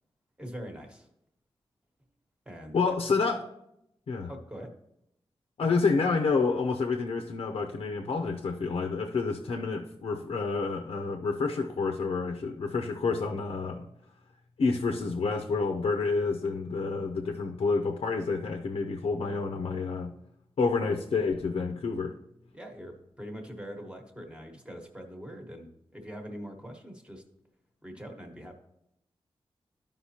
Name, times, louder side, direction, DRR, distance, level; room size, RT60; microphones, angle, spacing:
voice 1, 0.4-1.1 2.4-3.0 4.3-4.7 22.5-27.2 27.8-28.5, equal, 10° right, 2 dB, 1.2 m, -43 dB
voice 2, 2.7-3.4 4.1-4.3 5.6-13.9 14.6-20.1 20.6-22.1, left 4 dB, 75° left, 3 dB, 0.6 m, -29 dB
13.5 x 5.2 x 2.8 m, 0.80 s
wide cardioid pair, 140°, 10 cm